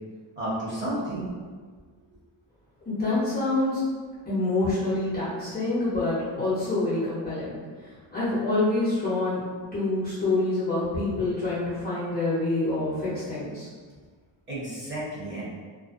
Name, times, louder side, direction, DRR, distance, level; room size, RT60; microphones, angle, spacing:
voice 1, 0.4-1.3 14.5-15.4, right 1 dB, 25° right, -9 dB, 0.9 m, -31 dB
voice 2, 2.9-3.8 4.3-9.4 9.7-13.7, left 2 dB, 20° left, -12 dB, 0.6 m, -27 dB
2.4 x 2.2 x 2.4 m, 1.5 s
cardioid pair, 155°, 47 cm